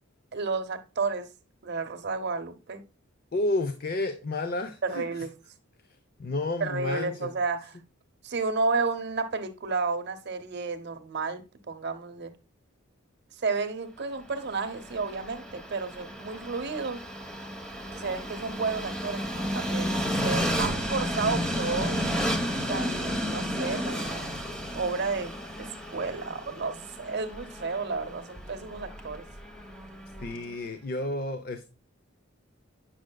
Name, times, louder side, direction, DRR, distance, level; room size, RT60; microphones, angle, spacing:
voice 1, 0.3-1.3 1.6-2.8 4.8-5.3 6.6-7.8 8.2-12.3 13.4-17.0 17.9-22.0 22.7-24.3 24.7-25.3 25.6-25.7 25.9-29.2, right 4 dB, 55° right, 0.8 m, -32 dB
voice 2, 3.3-5.0 6.2-7.3 30.2-31.7, left 2 dB, 50° left, 0.6 m, -31 dB
Train, 14.4-30.5, equal, 5° left, 1.0 m, -32 dB
8.7 x 6.3 x 2.2 m
head